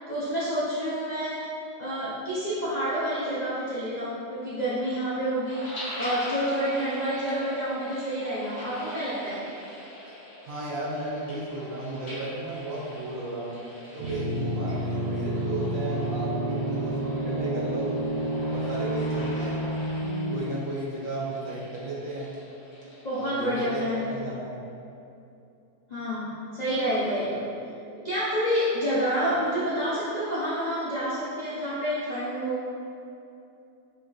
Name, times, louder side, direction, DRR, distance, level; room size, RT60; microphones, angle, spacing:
voice 1, 0.1-1.5 1.8-9.4 23.0-24.1 25.9-27.5 28.0-32.7, equal, 70° left, -9 dB, 0.4 m, -28 dB
sound 1, 5.5-24.2, equal, 30° left, 0.7 m, -43 dB
voice 2, 10.4-13.6 13.9-18.0 18.5-19.7 20.3-22.4 23.2-24.6, right 1 dB, 60° right, -6 dB, 1.1 m, -34 dB
sound 2, 14.0-20.4, right 1 dB, 80° right, 1.2 m, -29 dB
4.9 x 2.4 x 3.8 m, 2.6 s
omnidirectional pair, 1.7 m